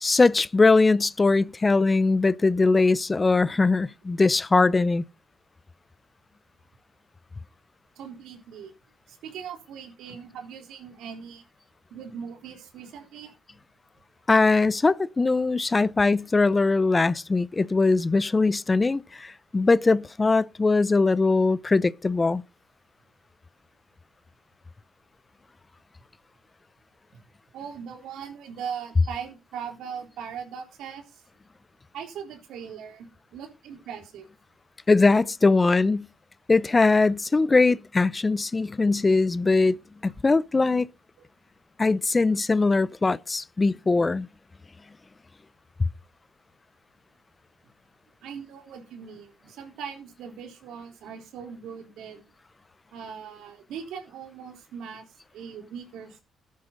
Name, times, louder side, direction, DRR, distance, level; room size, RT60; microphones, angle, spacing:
voice 1, 0.0-5.0 14.3-22.4 34.9-36.1 36.5-39.8 40.0-40.9 41.8-44.3, left 3 dB, 25° left, 0.6 m, -21 dB
voice 2, 8.0-8.7 9.1-11.4 11.9-13.3 27.1-27.2 27.5-31.2 31.9-34.3 48.2-52.3 52.9-55.0 55.3-56.2, right 7 dB, 85° right, 3.8 m, -40 dB
14.0 x 10.5 x 3.9 m
cardioid pair, 90°, 0 cm